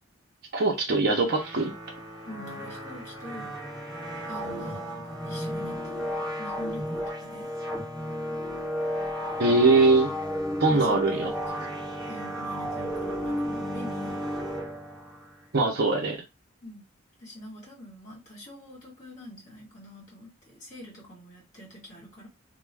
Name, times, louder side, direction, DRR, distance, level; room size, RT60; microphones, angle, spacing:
voice 1, 0.5-1.7 9.4-10.1 10.6-11.3 15.5-16.2, right 3 dB, 50° right, 0 dB, 0.6 m, -22 dB
sound 1, 1.2-15.3, equal, 5° left, 1.2 m, -33 dB
voice 2, 2.2-3.5 4.3-7.5 10.7-11.7 12.1-14.2 16.6-16.8 17.2-22.3, left 1 dB, 40° left, -2 dB, 1.4 m, -45 dB
2.4 x 2.2 x 3.2 m, 0.24 s
head